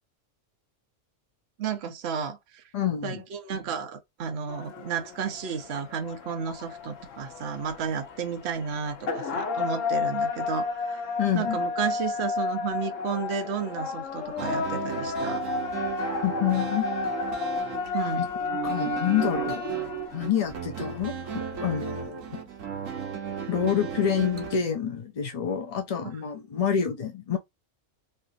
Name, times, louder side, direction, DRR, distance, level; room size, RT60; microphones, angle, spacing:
voice 1, 1.6-2.6 3.0-11.1 11.3-15.4 17.9-18.2, right 7 dB, 60° right, 0.9 m, -32 dB
voice 2, 2.7-3.2 11.2-11.6 16.2-16.8 18.6-19.6 20.1-22.4 23.5-27.4, left 8 dB, 55° left, 0.4 m, -27 dB
sound 1, 4.5-22.0, left 4 dB, 75° left, 1.1 m, -32 dB
sound 2, 14.4-24.6, right 7 dB, 75° right, 1.3 m, -35 dB
3.3 x 2.4 x 2.6 m
omnidirectional pair, 1.4 m